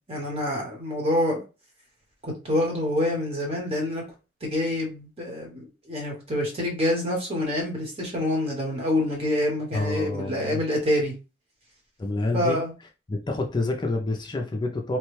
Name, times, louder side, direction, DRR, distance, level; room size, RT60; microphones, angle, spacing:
voice 1, 0.1-1.4 2.2-4.0 4.4-11.1 12.3-12.7, left 1 dB, 30° right, 0 dB, 1.1 m, -26 dB
voice 2, 9.7-10.6 12.0-12.6 13.1-15.0, left 2 dB, 25° left, 2 dB, 0.4 m, -28 dB
3.1 x 2.2 x 3.1 m, 0.30 s
head